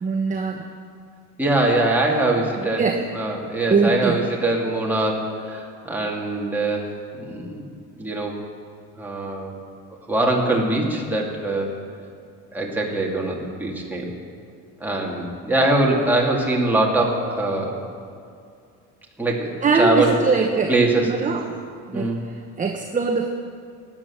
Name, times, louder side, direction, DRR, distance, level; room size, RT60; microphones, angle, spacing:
voice 1, 0.0-0.7 2.6-3.0 3.7-4.2 19.6-20.7 21.0-21.4 21.9-23.3, right 4 dB, 20° right, 3 dB, 1.0 m, -22 dB
voice 2, 1.4-2.8 3.1-6.9 7.1-7.7 8.0-8.4 9.0-9.5 10.1-11.7 12.5-14.1 14.8-17.8 19.2-20.1 20.7-21.3 21.9-22.2, right 2 dB, 5° right, -2 dB, 2.8 m, -22 dB
15.5 x 9.8 x 7.3 m, 2.4 s
cardioid pair, 110°, 34 cm